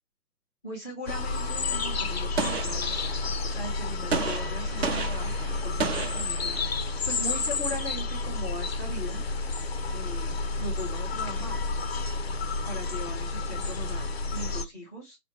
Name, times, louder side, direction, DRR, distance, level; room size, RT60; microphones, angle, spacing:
voice 1, 0.6-9.2 9.9-11.7 12.7-15.2, equal, 5° right, 0.5 m, -39 dB
sound 1, 1.1-14.6, left 3 dB, 40° left, 0.5 m, -30 dB
Gunshot gunfire, 2.4-3.4 4.1-6.9, right 4 dB, 40° right, 0.8 m, -32 dB
5.0 x 2.1 x 4.4 m
figure-of-eight pair, 135°, 48 cm